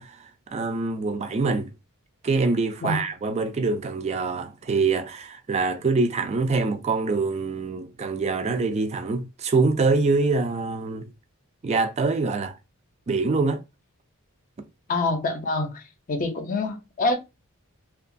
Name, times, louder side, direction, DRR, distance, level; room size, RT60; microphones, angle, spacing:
voice 1, 0.0-1.7 2.2-11.1 11.6-12.5 13.1-13.6, right 3 dB, 30° right, 0.3 m, -25 dB
voice 2, 14.9-15.8 16.1-17.2, left 2 dB, 35° left, 0.5 m, -26 dB
2.8 x 2.3 x 2.5 m
head